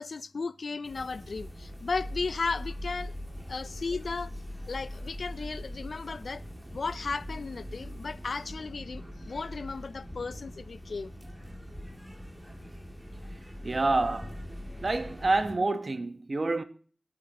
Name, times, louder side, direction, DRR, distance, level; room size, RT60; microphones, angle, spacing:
voice 1, 0.0-3.1 3.5-4.3 4.7-6.4 6.7-11.1, left 4 dB, 85° left, 0.5 m, -35 dB
sound 1, 0.8-15.6, equal, 10° right, 2.2 m, -42 dB
voice 2, 13.6-14.4 14.8-16.6, right 2 dB, 60° right, 1.1 m, -28 dB
23.5 x 8.7 x 2.9 m
wide cardioid pair, 50°, 0 cm